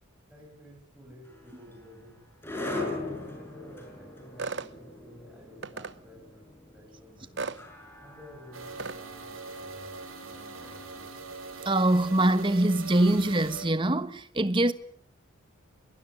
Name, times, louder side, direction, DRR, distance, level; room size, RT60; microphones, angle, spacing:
voice 1, 0.3-2.2 2.7-7.6 8.0-11.1, equal, 5° right, 7.2 m, -52 dB
sound 1, 1.2-12.4, left 2 dB, 10° left, 6.9 m, -41 dB
sound 2, 4.4-4.7 5.6-5.9 7.4-7.6 8.8-9.0, right 4 dB, 55° right, 1.0 m, -34 dB
sound 3, 8.5-13.7, right 3 dB, 85° right, 7.0 m, -42 dB
voice 2, 11.6-14.7, right 1 dB, 25° right, 1.3 m, -23 dB
23.0 x 19.5 x 9.8 m
head